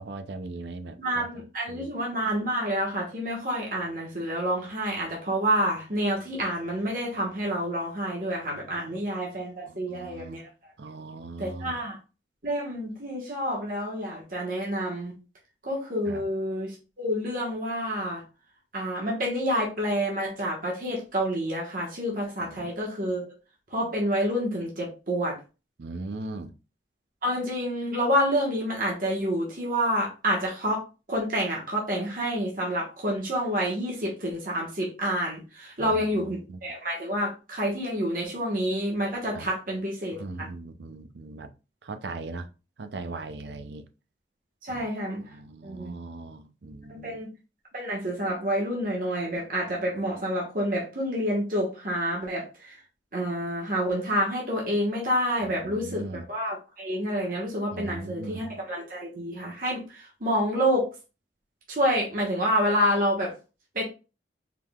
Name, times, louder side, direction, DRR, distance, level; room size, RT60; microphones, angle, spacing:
voice 1, 0.0-1.3 1.7-1.9 9.7-10.4 10.8-11.8 16.1-16.2 22.4-22.7 25.8-26.5 35.8-36.6 39.3-39.5 40.1-41.5 41.8-42.5 42.8-43.9 44.7-44.9 45.2-47.2 55.4-56.2 57.7-58.4, right 3 dB, 75° right, 0.5 m, -39 dB
voice 2, 1.0-10.5 11.4-12.0 12.4-15.1 15.6-18.2 18.7-23.3 23.7-25.4 27.2-30.8 31.1-40.5 44.6-45.2 45.6-45.9 46.9-47.3 47.7-52.8 53.1-60.9 61.7-63.3 63.7-63.8, equal, 50° right, 1.3 m, -28 dB
4.7 x 3.7 x 2.3 m
head